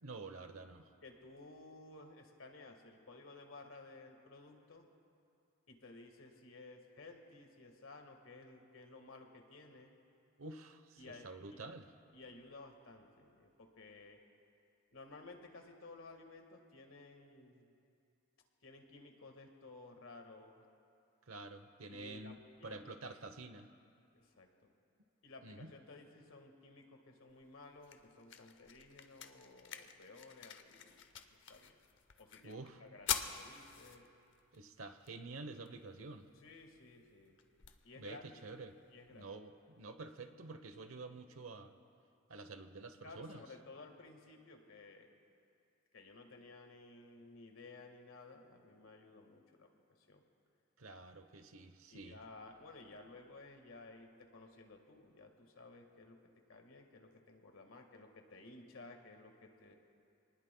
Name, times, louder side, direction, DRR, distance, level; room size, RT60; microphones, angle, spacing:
voice 1, 0.0-0.9 10.4-11.9 21.3-23.7 25.4-25.7 32.4-32.8 34.5-36.3 38.0-38.7 39.1-41.7 42.3-43.4 50.8-52.2, right 3 dB, 80° right, 9 dB, 0.9 m, -49 dB
voice 2, 1.0-4.9 5.7-9.9 11.0-11.6 12.1-14.2 14.9-17.7 18.6-20.6 21.9-22.9 24.1-24.7 25.2-31.8 32.2-34.1 36.4-37.4 37.8-38.2 38.9-39.3 43.0-45.2 45.9-49.7 50.0-50.2 51.9-56.2 56.5-59.8, left 3 dB, 75° left, 3 dB, 1.7 m, -56 dB
sound 1, 27.3-39.3, left 8 dB, 60° left, 0.7 m, -47 dB
26.0 x 19.5 x 2.3 m, 2.5 s
head